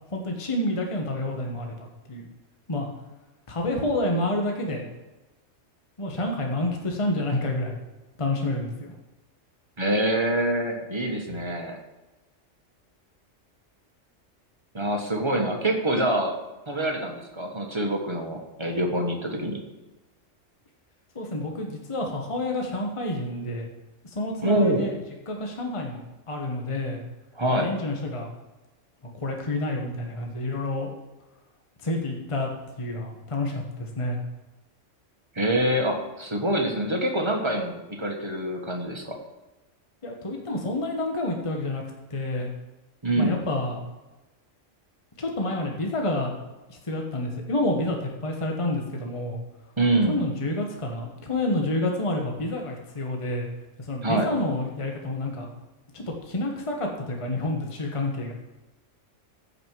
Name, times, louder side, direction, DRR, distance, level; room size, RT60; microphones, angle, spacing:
voice 1, 0.1-2.3 2.7-2.9 3.5-4.8 6.0-7.8 8.2-8.9 21.1-23.6 24.1-25.0 25.3-27.0 27.5-28.3 29.2-30.9 31.8-32.5 32.8-34.2 40.0-41.8 42.1-42.5 43.1-43.8 45.2-46.3 46.7-49.4 50.1-53.5 53.8-55.5 55.9-58.3, left 1 dB, 25° left, 1 dB, 1.2 m, -29 dB
voice 2, 9.8-11.8 14.7-16.3 16.7-19.6 24.4-24.9 27.3-27.7 35.3-39.2 43.0-43.4 49.8-50.2 54.0-54.3, right 1 dB, 25° right, 1 dB, 1.5 m, -25 dB
15.0 x 5.4 x 4.7 m, 1.1 s
omnidirectional pair, 1.3 m